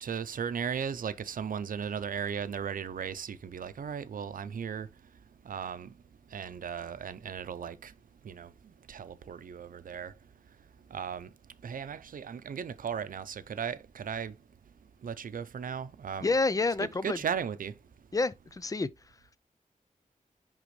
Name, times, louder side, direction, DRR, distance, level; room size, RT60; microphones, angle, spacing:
voice 1, 0.0-4.9 5.5-5.9 6.3-7.9 8.3-8.5 8.9-10.1 10.9-11.3 11.6-14.3 15.0-16.3 16.8-17.7, right 7 dB, 90° right, 0.6 m, -36 dB
voice 2, 16.2-17.2 18.1-18.9, left 3 dB, 25° left, 0.4 m, -28 dB
10.0 x 3.6 x 3.1 m
wide cardioid pair, 105°, 14 cm